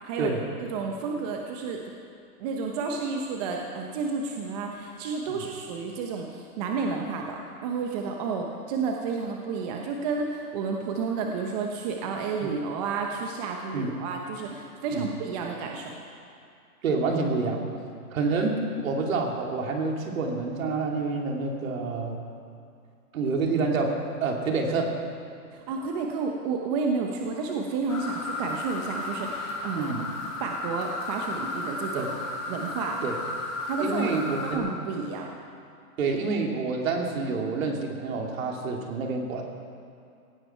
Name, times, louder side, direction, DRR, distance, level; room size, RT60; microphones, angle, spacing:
voice 1, 0.0-1.8 2.4-15.9 25.5-30.1 30.4-32.1 32.5-33.0 33.7-35.3, right 4 dB, 25° right, 2 dB, 1.0 m, -31 dB
voice 2, 16.8-17.7 18.1-22.2 23.1-24.9 29.8-30.1 31.9-32.1 33.0-33.2 33.8-34.7 36.0-39.4, right 3 dB, 60° right, 1 dB, 3.1 m, -28 dB
sound 1, 27.9-34.5, left 2 dB, 5° left, 0.4 m, -34 dB
17.5 x 17.0 x 4.6 m, 2.4 s
hypercardioid pair, 155°, 46 cm